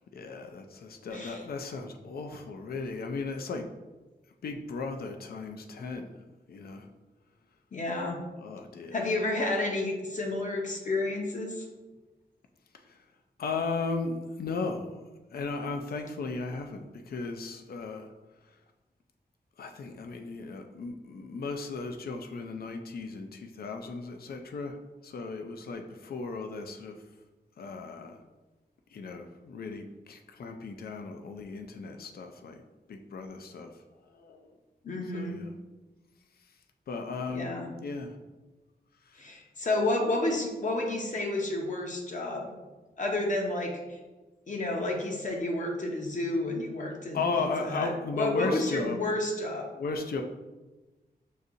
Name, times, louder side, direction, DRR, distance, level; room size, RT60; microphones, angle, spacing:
voice 1, 0.1-3.7 4.4-6.1 6.5-6.9 8.4-9.0 12.7-13.0 13.4-15.0 15.3-18.1 19.6-24.8 25.0-27.0 27.6-28.2 28.9-32.6 32.9-33.7 34.1-34.5 35.1-35.5 36.9-37.5 37.8-38.2 39.1-39.3 47.1-49.0 49.7-50.2, left 4 dB, 65° left, 5 dB, 0.4 m, -36 dB
voice 2, 1.1-1.4 7.7-8.2 8.9-11.7 34.8-35.4 37.3-37.7 39.2-42.6 43.0-44.0 44.5-49.7, left 2 dB, 50° left, 1 dB, 0.8 m, -31 dB
6.3 x 2.7 x 2.5 m, 1.2 s
wide cardioid pair, 130°, 17 cm